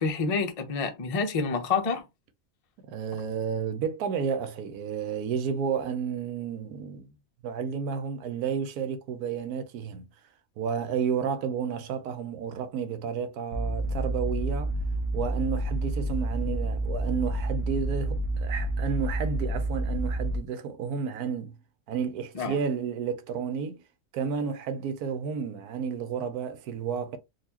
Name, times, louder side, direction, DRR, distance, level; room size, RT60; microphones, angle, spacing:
voice 1, 0.0-2.0 22.3-22.6, left 4 dB, 50° left, 0.4 m, -28 dB
voice 2, 2.9-7.1 7.4-10.0 10.6-14.7 15.1-21.5 21.9-23.8 24.1-27.2, right 6 dB, 80° right, 1.2 m, -31 dB
sound 1, 13.5-20.4, right 1 dB, 50° right, 0.8 m, -29 dB
4.0 x 2.6 x 2.8 m
omnidirectional pair, 1.6 m